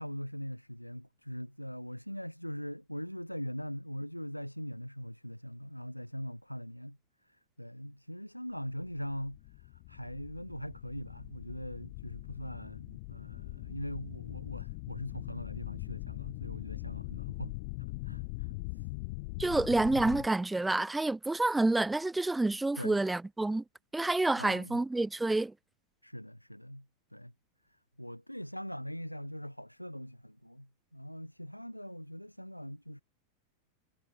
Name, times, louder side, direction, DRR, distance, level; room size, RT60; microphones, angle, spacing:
voice 1, 0.0-7.0 7.3-17.5 17.8-18.9 22.8-23.0 24.4-24.8 26.0-26.9 27.1-27.3 28.0-33.0, equal, 90° left, 0.9 m, -42 dB
sound 1, 9.3-20.3, left 26 dB, 50° left, 3.3 m, -41 dB
voice 2, 19.4-23.6 23.9-25.5, right 2 dB, 5° right, 0.3 m, -28 dB
figure-of-eight pair, 90°, 0 cm